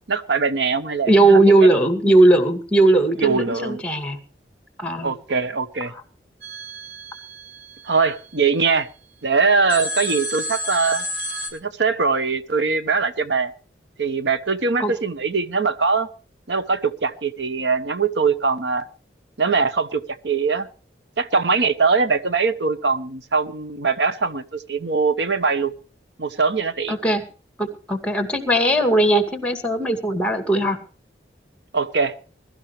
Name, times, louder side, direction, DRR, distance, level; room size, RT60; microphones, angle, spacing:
voice 1, 0.1-1.4 3.2-3.8 5.0-5.9 7.8-8.9 9.2-11.0 11.5-13.5 14.0-16.1 16.5-18.8 19.4-20.7 21.2-25.7 26.2-27.0 31.7-32.1, right 4 dB, 80° right, 1.1 m, -22 dB
voice 2, 1.1-4.2 4.8-5.1 14.8-14.9 26.9-27.2 27.6-30.8, right 2 dB, 5° left, 2.2 m, -18 dB
sound 1, 6.4-8.7 9.7-11.5, equal, 55° right, 4.8 m, -31 dB
21.5 x 13.0 x 3.2 m
head